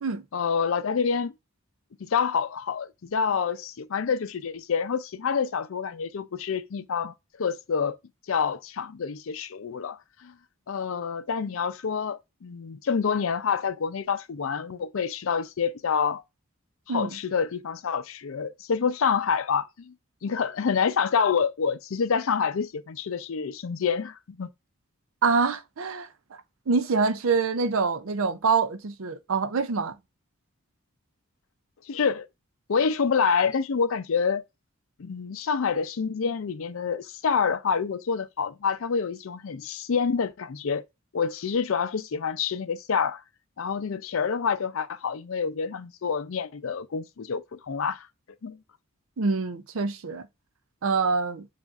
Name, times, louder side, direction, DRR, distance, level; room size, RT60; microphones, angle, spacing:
voice 1, 0.3-1.3 2.0-8.0 8.3-10.3 10.7-16.2 16.9-19.9 20.2-24.5 31.9-32.3 32.7-34.4 35.0-40.8 41.1-43.2 43.6-48.1 48.4-48.6, left 6 dB, 75° left, 0.5 m, -27 dB
voice 2, 25.2-26.1 26.7-30.0 49.2-50.2 50.8-51.5, right 4 dB, 75° right, 0.5 m, -25 dB
7.1 x 2.5 x 2.5 m
head